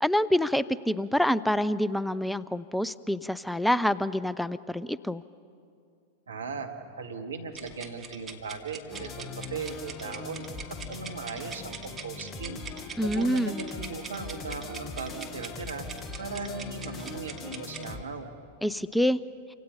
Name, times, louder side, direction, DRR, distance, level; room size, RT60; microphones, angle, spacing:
voice 1, 0.0-5.2 13.0-13.6 18.6-19.2, equal, ahead, 17 dB, 0.5 m, -26 dB
voice 2, 6.3-6.7 7.0-10.5 10.9-12.6 13.0-15.9 16.2-18.3, right 4 dB, 80° right, 3 dB, 2.3 m, -38 dB
sound 1, 7.5-17.9, right 5 dB, 20° right, 2.6 m, -43 dB
sound 2, 8.9-18.0, left 4 dB, 25° left, 1.5 m, -41 dB
29.5 x 26.0 x 5.6 m, 2.5 s
figure-of-eight pair, 95°, 0 cm